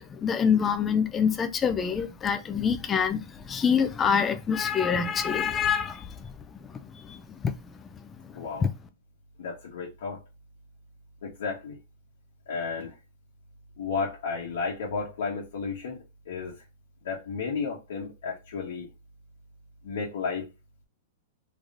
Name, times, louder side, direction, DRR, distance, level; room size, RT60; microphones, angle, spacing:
voice 1, 0.0-6.3 6.6-7.5 8.3-8.7, left 7 dB, 15° left, 0.5 m, -26 dB
voice 2, 9.4-10.2 11.2-11.8 12.5-12.9 13.8-16.0 16.3-16.6 17.0-18.9 19.8-20.5, left 5 dB, 80° left, 1.2 m, -32 dB
3.5 x 3.2 x 2.5 m
hypercardioid pair, 150°, 0 cm